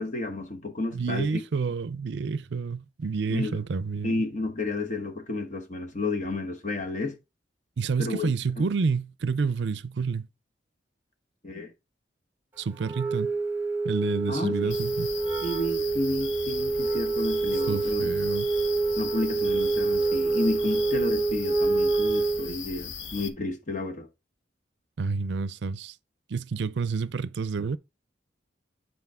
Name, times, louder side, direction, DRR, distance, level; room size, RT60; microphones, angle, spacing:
voice 1, 0.0-1.4 3.3-3.6 4.0-7.2 8.0-8.3 11.4-11.7 14.3-14.7 15.4-18.1 19.0-24.1, left 2 dB, 40° left, 1.2 m, -31 dB
voice 2, 0.9-4.2 7.8-10.2 12.6-13.3 13.8-15.1 17.7-18.5 25.0-25.9 26.3-27.8, right 5 dB, 70° right, 0.5 m, -29 dB
Wind instrument woodwind instrument, 12.8-22.5, right 3 dB, 10° right, 1.3 m, -27 dB
sound 1, 14.7-23.3, left 6 dB, 80° left, 0.8 m, -39 dB
8.2 x 4.7 x 3.6 m
head